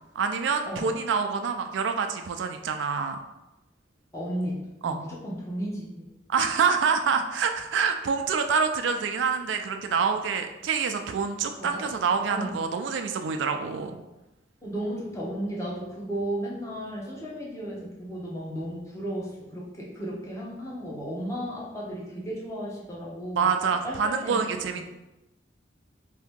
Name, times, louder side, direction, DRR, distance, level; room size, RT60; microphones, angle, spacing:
voice 1, 0.2-3.2 4.8-5.0 6.3-14.0 23.4-24.8, right 5 dB, 85° right, 6 dB, 0.3 m, -26 dB
voice 2, 4.1-6.1 11.6-11.9 12.3-12.6 14.6-23.6 23.8-24.4 24.7-24.8, equal, 15° left, -6 dB, 0.8 m, -34 dB
2.8 x 2.6 x 3.5 m, 0.98 s
head